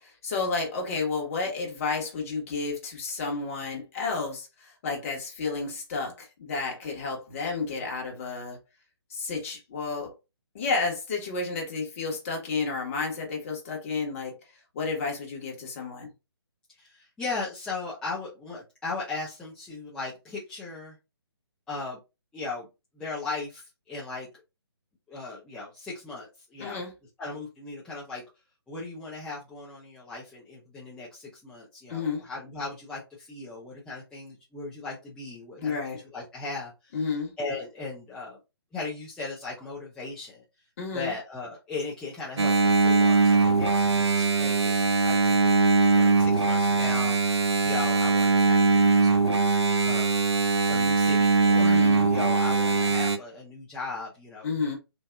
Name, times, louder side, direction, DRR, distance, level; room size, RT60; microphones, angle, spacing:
voice 1, 0.0-8.6 9.1-10.1 10.5-14.4 14.7-16.1 26.6-26.9 31.9-32.2 35.6-36.0 36.9-37.3 40.8-41.2 51.6-52.1 54.4-54.8, left 4 dB, 30° left, 1.1 m, -31 dB
voice 2, 16.7-21.0 21.7-22.0 22.3-22.7 22.9-24.3 25.1-26.8 27.2-28.2 28.7-38.4 38.7-40.4 40.9-45.6 45.9-49.5 49.8-50.1 50.7-51.8 52.1-54.8, left 3 dB, 5° left, 0.5 m, -37 dB
Engine, 42.4-53.2, right 3 dB, 80° right, 0.6 m, -21 dB
3.4 x 2.6 x 2.4 m
figure-of-eight pair, 140°, 14 cm